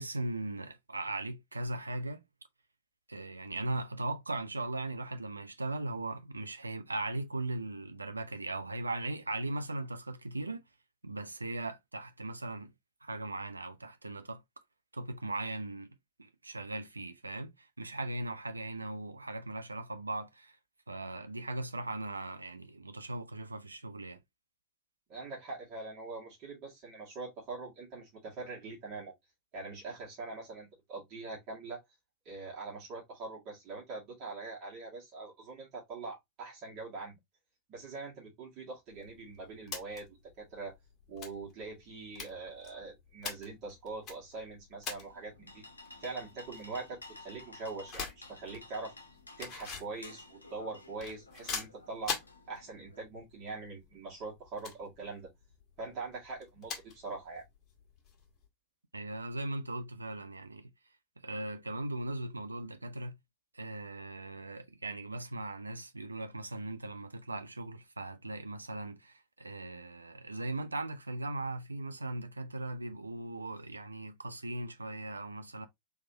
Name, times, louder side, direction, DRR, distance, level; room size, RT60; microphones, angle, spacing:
voice 1, 0.0-2.2 3.1-10.6 11.0-12.7 13.0-14.4 14.9-20.6 20.9-24.2 58.9-60.7 61.2-63.2 63.5-75.7, right 2 dB, 80° right, 0.5 m, -38 dB
voice 2, 25.1-29.1 29.5-31.8 32.3-37.2 37.7-40.7 41.1-45.6 46.0-48.9 49.4-52.2 52.5-55.3 55.8-57.4, right 3 dB, 40° right, 1.8 m, -43 dB
sound 1, 38.9-58.4, left 6 dB, 30° left, 1.4 m, -46 dB
sound 2, 45.0-53.0, left 2 dB, 80° left, 0.7 m, -53 dB
3.4 x 3.2 x 2.6 m
figure-of-eight pair, 90°, 0 cm